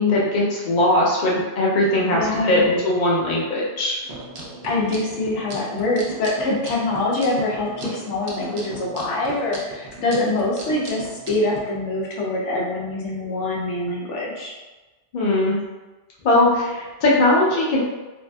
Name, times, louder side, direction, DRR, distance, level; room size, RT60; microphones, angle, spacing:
voice 1, 0.0-4.0 15.1-15.6 16.2-17.8, left 1 dB, 50° left, -5 dB, 0.7 m, -19 dB
voice 2, 2.1-2.7 4.6-14.5, left 2 dB, 85° left, -3 dB, 1.0 m, -24 dB
sound 1, 4.0-11.6, right 2 dB, 60° right, 0.7 m, -37 dB
2.7 x 2.4 x 2.2 m, 1.2 s
omnidirectional pair, 1.2 m